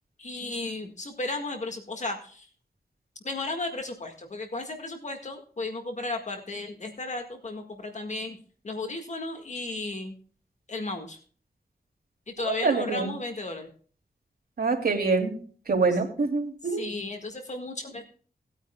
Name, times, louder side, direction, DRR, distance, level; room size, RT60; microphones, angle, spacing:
voice 1, 0.2-2.5 3.2-8.4 8.6-10.1 10.7-11.2 12.3-13.7 16.8-18.0, left 2 dB, 50° left, 4 dB, 1.8 m, -34 dB
voice 2, 12.4-13.1 14.6-15.4 15.7-16.9, right 4 dB, 75° right, 2 dB, 2.8 m, -25 dB
18.5 x 9.1 x 2.3 m, 0.43 s
wide cardioid pair, 125°, 16 cm